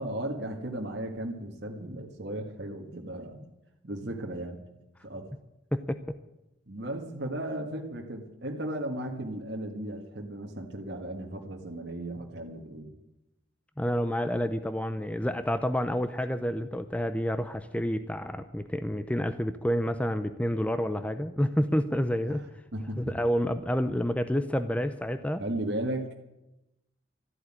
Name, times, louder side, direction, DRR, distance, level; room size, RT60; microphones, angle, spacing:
voice 1, 0.0-3.4 3.8-4.6 5.0-5.3 6.7-12.9 22.3-22.4 22.7-23.1 25.4-26.2, right 1 dB, 55° right, 1 dB, 1.7 m, -35 dB
voice 2, 5.7-6.2 13.8-22.5 23.0-25.4, equal, 5° left, 10 dB, 0.5 m, -29 dB
13.5 x 8.1 x 10.0 m, 0.94 s
head